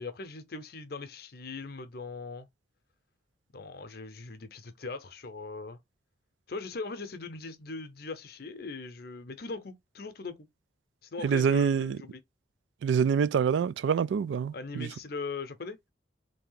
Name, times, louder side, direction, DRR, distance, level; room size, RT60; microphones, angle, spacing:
voice 1, 0.0-2.5 3.5-5.8 6.5-10.5 11.1-12.2 14.5-15.9, left 3 dB, 55° left, 0.7 m, -40 dB
voice 2, 11.2-12.0 12.8-14.9, right 6 dB, 85° right, 0.3 m, -26 dB
3.4 x 2.7 x 3.8 m
head